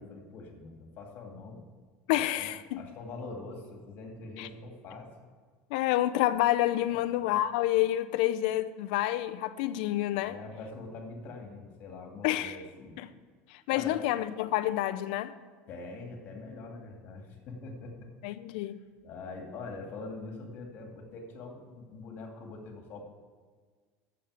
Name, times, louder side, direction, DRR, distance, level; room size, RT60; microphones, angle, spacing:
voice 1, 0.0-1.6 2.1-2.5 2.8-5.1 6.9-7.1 10.2-12.9 13.7-13.9 15.7-18.1 19.0-23.0, left 3 dB, 45° left, 2.4 m, -44 dB
voice 2, 2.1-2.8 4.4-4.5 5.7-10.4 12.2-12.6 13.0-13.1 13.5-15.3 18.2-18.8, left 14 dB, 80° left, 0.6 m, -28 dB
8.6 x 7.3 x 8.2 m
cardioid pair, 140°, 5 cm